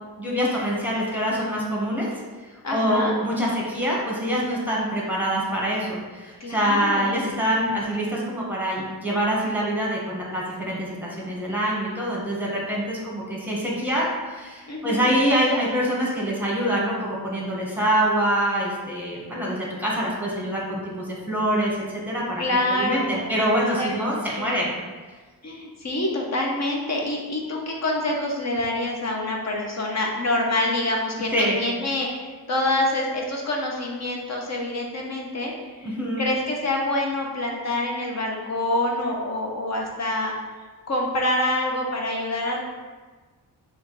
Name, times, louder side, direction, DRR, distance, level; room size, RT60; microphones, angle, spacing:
voice 1, 0.2-2.1 2.7-24.7 31.3-31.6 35.8-36.2, equal, 5° right, -4 dB, 1.3 m, -25 dB
voice 2, 2.6-3.1 6.4-7.1 14.7-15.1 22.4-24.5 25.4-35.5 35.8-40.3 40.9-42.6, left 1 dB, 40° left, -1 dB, 0.9 m, -26 dB
5.0 x 2.7 x 4.0 m, 1.4 s
cardioid pair, 90°, 40 cm